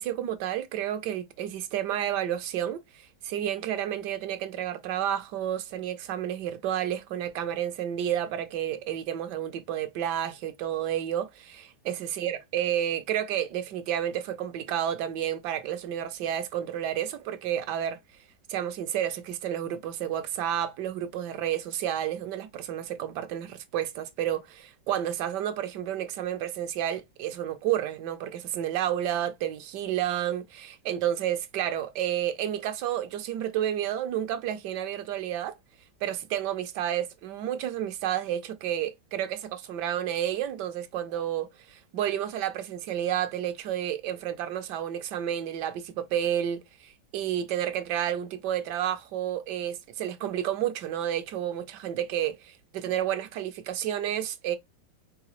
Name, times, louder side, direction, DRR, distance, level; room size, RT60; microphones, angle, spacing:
voice 1, 0.0-18.0 18.5-35.6 36.0-54.6, right 10 dB, 75° right, 1.2 m, -31 dB
4.7 x 3.1 x 3.0 m
omnidirectional pair, 2.0 m